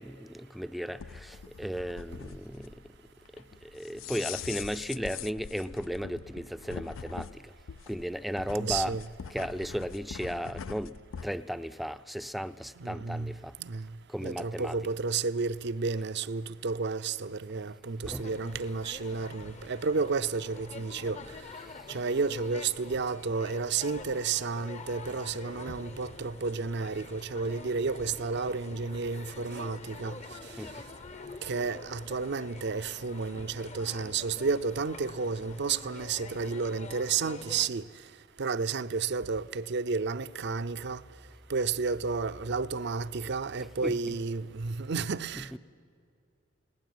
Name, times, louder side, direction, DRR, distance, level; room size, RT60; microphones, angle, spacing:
voice 1, 0.0-2.7 3.6-7.5 7.9-9.0 9.3-11.0 11.2-13.5 14.1-14.9 18.0-18.6 30.6-30.8 43.6-44.2 45.3-45.6, equal, ahead, 0.5 m, -35 dB
sound 1, 1.0-11.3, left 7 dB, 80° left, 0.5 m, -43 dB
voice 2, 8.5-9.0 12.8-13.3 13.6-13.9 14.2-21.2 21.9-30.2 31.4-37.9 38.4-41.0 41.5-45.6, right 4 dB, 60° right, 0.6 m, -31 dB
sound 2, 18.1-37.7, left 3 dB, 35° left, 0.8 m, -46 dB
20.0 x 18.0 x 9.2 m
head